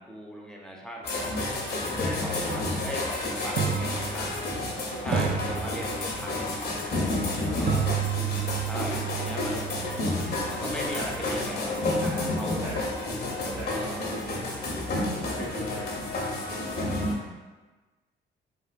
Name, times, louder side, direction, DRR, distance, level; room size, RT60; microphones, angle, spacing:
voice 1, 0.0-1.5 1.8-4.4 5.0-6.5 7.4-7.9 8.6-9.9 10.5-12.7 13.7-14.2, equal, 5° left, -2 dB, 0.5 m, -39 dB
sound 1, 1.0-17.1, left 2 dB, 50° left, 0.7 m, -30 dB
voice 2, 2.1-2.7 4.4-5.0 7.1-7.8 9.1-9.3 10.9-11.0 12.0-12.8 13.3-17.3, right 2 dB, 85° right, -8 dB, 1.0 m, -41 dB
sound 2, 2.5-2.6 3.6-4.7 5.1-6.4 7.7-11.6, right 7 dB, 50° right, 0.5 m, -32 dB
3.4 x 2.5 x 2.4 m, 1.2 s
cardioid pair, 90°, 20 cm